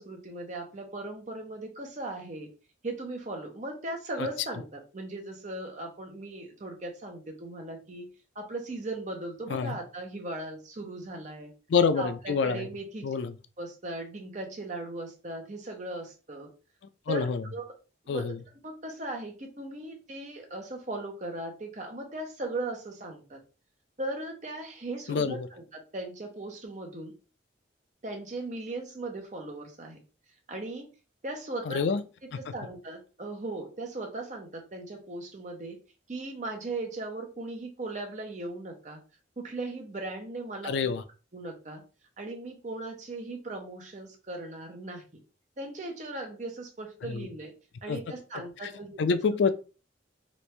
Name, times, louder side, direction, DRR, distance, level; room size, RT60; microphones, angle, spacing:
voice 1, 0.0-2.5 2.8-8.1 8.3-11.5 12.0-13.1 13.6-16.5 17.1-17.7 18.1-18.4 18.6-23.4 24.0-27.1 28.0-30.0 30.5-30.9 31.2-31.8 32.5-35.8 36.1-39.0 39.4-40.9 41.3-41.8 42.2-45.0 45.6-47.5 47.8-49.0, right 2 dB, 40° right, 0.8 m, -38 dB
voice 2, 11.7-12.7 13.0-13.3 17.1-17.4 18.1-18.4 25.1-25.5 31.7-32.0 32.3-32.5 40.6-41.0 47.1-47.3 47.9-48.0 48.6-48.7 49.0-49.5, left 5 dB, 70° left, 0.4 m, -27 dB
3.1 x 2.5 x 3.2 m
head